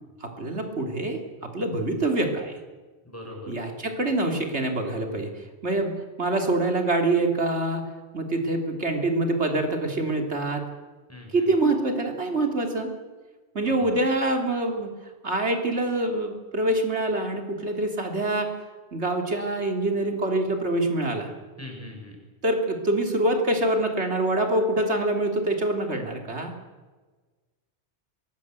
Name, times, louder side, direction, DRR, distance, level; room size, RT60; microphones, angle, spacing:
voice 1, 0.2-2.6 3.5-5.9 6.2-7.8 8.1-10.7 11.3-13.0 13.6-14.9 15.2-18.5 18.9-21.3 22.4-26.5, right 2 dB, 85° right, 3 dB, 3.5 m, -25 dB
voice 2, 3.0-3.5 11.1-11.5 13.8-14.0 21.6-22.2, left 1 dB, 15° left, 0 dB, 7.2 m, -40 dB
24.0 x 20.5 x 8.3 m, 1.3 s
omnidirectional pair, 1.1 m